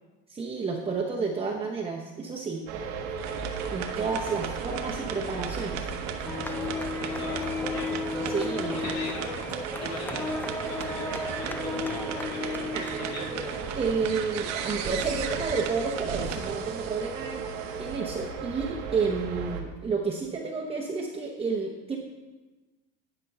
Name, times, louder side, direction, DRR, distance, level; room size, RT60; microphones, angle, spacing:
voice 1, 0.3-2.6 3.7-5.9 8.3-8.9 12.7-12.9 13.3-13.4 13.7-22.0, right 4 dB, 15° right, -3 dB, 0.9 m, -31 dB
sound 1, 2.7-19.6, right 5 dB, 85° right, 1.4 m, -36 dB
sound 2, 3.2-18.0, right 7 dB, 55° right, 1.1 m, -37 dB
sound 3, 6.2-14.6, left 3 dB, 5° left, 0.3 m, -34 dB
voice 2, 7.0-7.9 8.7-9.5 9.8-13.3, left 4 dB, 50° left, -1 dB, 2.1 m, -41 dB
10.5 x 5.3 x 5.4 m, 1.2 s
cardioid pair, 130°, 32 cm